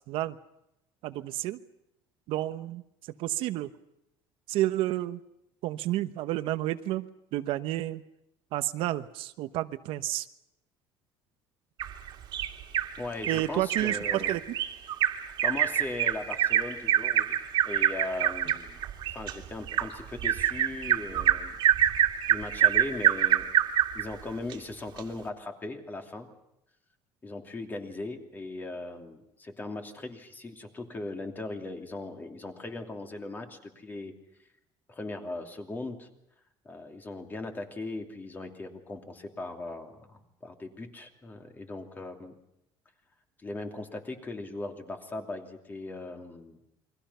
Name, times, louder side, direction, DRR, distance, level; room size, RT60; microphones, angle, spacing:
voice 1, 1.0-1.6 2.3-2.8 3.2-3.7 4.5-5.2 5.6-7.1 7.3-8.0 8.5-10.3 13.3-14.4, right 15 dB, 70° right, 10 dB, 1.1 m, -30 dB
Bird vocalization bird call bird song, 11.8-12.9 13.2-13.4 13.7-24.0 24.5-24.6 25.0-25.1, right 11 dB, 50° right, 2.4 m, -26 dB
voice 2, 13.0-14.4 15.4-17.4 17.6-18.8 19.1-21.6 22.3-23.5 23.9-26.3 27.2-34.2 34.9-36.1 36.6-42.3 43.4-46.6, left 2 dB, 20° left, 4 dB, 2.8 m, -38 dB
29.0 x 23.0 x 5.7 m, 0.84 s
cardioid pair, 155°, 10 cm